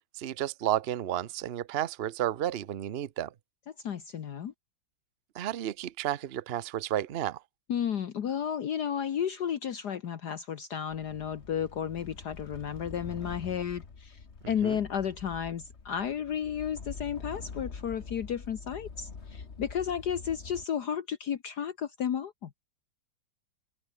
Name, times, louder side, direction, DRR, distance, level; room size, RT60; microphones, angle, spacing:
voice 1, 0.1-3.3 5.3-7.4 14.6-14.8, right 12 dB, 55° right, 0.6 m, -32 dB
voice 2, 3.7-4.5 7.7-22.5, left 8 dB, 60° left, 1.7 m, -33 dB
sound 1, 10.9-20.7, left 5 dB, 35° left, 1.9 m, -45 dB
open air
omnidirectional pair, 2.1 m